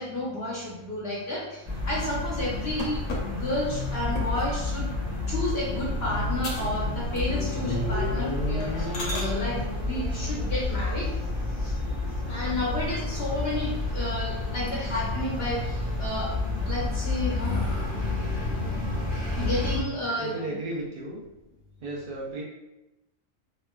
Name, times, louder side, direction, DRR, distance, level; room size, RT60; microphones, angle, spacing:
voice 1, 0.0-4.9 5.3-11.2 11.5-11.8 12.3-16.3 16.7-17.6 19.4-20.3, left 1 dB, 60° left, -5 dB, 0.7 m, -31 dB
sound 1, 1.7-19.8, left 2 dB, 5° right, 0.8 m, -30 dB
sound 2, 2.8-4.6 5.2-5.5 5.9-6.0 6.4-6.8 7.1-7.6 8.0-8.1 8.6-9.3 11.3-12.0 12.5-12.6 13.0-13.1 13.3-14.1 14.5-15.1 15.5-16.1 16.7-18.4, left 1 dB, 85° left, 1.0 m, -39 dB
voice 2, 20.1-21.2 21.8-22.4, right 2 dB, 65° right, -5 dB, 0.5 m, -34 dB
3.0 x 2.2 x 2.2 m, 0.98 s
omnidirectional pair, 1.4 m